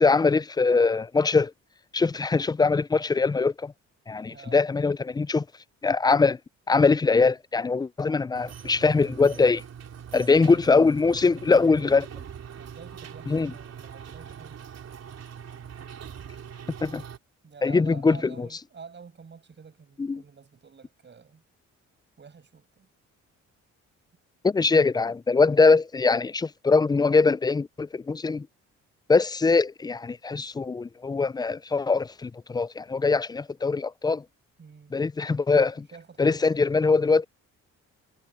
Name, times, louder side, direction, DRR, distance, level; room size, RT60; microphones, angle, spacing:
voice 1, 0.0-1.5 1.9-3.7 4.1-5.4 5.8-6.4 6.7-9.6 10.1-12.1 13.3-13.5 16.8-17.0 17.6-18.5 20.0-20.2 24.4-28.5 29.1-34.2 34.9-35.9 36.2-37.3, left 4 dB, 15° left, 0.3 m, -22 dB
voice 2, 4.3-4.7 10.1-11.0 12.6-14.7 17.4-21.4 22.2-22.9 34.6-34.9 35.9-36.8, right 5 dB, 35° right, 6.1 m, -48 dB
sound 1, 8.3-17.2, right 8 dB, 55° right, 4.1 m, -42 dB
cardioid pair, 90°, 30 cm